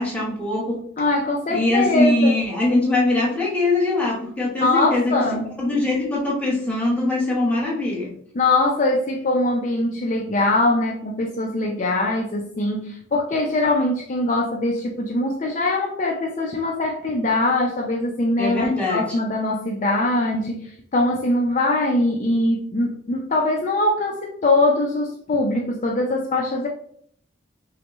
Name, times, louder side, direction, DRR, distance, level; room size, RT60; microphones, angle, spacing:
voice 1, 0.0-0.8 1.5-5.1 5.6-8.1 18.4-19.0, left 2 dB, 5° left, -5 dB, 1.2 m, -22 dB
voice 2, 1.0-2.4 4.6-5.5 8.3-26.7, left 2 dB, 40° left, 0 dB, 0.4 m, -22 dB
6.1 x 2.2 x 3.0 m, 0.65 s
head